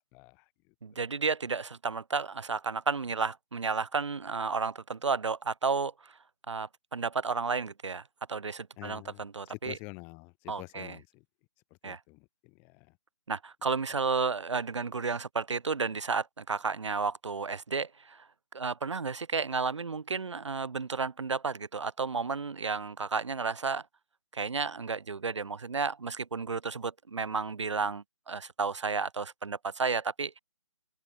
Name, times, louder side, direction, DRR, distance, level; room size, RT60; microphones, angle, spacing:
voice 1, 0.1-0.5 0.9-1.0 8.8-11.2 11.8-12.9, left 31 dB, 15° left, 0.4 m, -48 dB
voice 2, 0.8-6.2 6.5-8.0 8.3-9.8 10.5-11.0 11.8-12.0 13.3-18.3 18.5-23.9 24.3-30.4, right 4 dB, 75° right, 1.9 m, -32 dB
figure-of-eight pair, 145°, 15 cm